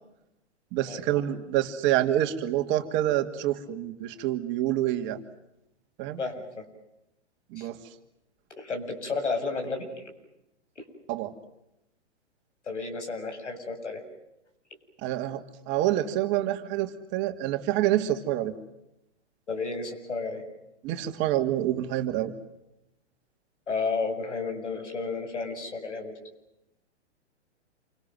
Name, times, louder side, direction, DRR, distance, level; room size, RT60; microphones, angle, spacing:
voice 1, 0.7-5.2 6.0-6.2 7.5-7.8 11.1-11.3 15.0-18.5 20.8-22.3, right 13 dB, 35° right, 6 dB, 2.6 m, -27 dB
voice 2, 8.6-10.0 10.8-10.9 12.7-14.0 19.5-20.4 23.7-26.1, left 4 dB, 80° left, 5 dB, 7.5 m, -32 dB
28.5 x 25.5 x 7.8 m, 0.86 s
figure-of-eight pair, 115°, 35 cm